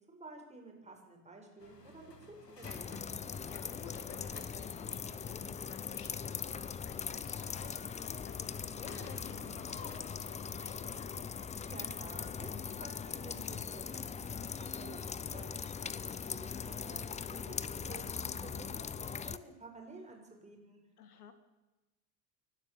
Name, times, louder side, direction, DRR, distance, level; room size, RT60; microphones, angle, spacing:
voice 1, 0.1-3.1 11.7-20.8, right 3 dB, 15° right, 2 dB, 6.7 m, -52 dB
sound 1, 1.6-10.0, left 2 dB, 90° left, 2.2 m, -55 dB
sound 2, 2.6-19.4, left 6 dB, 15° left, 0.8 m, -40 dB
voice 2, 3.4-11.3 21.0-21.3, left 7 dB, 70° left, 10 dB, 2.4 m, -53 dB
29.0 x 12.0 x 7.4 m, 1.0 s
figure-of-eight pair, 80°, 47 cm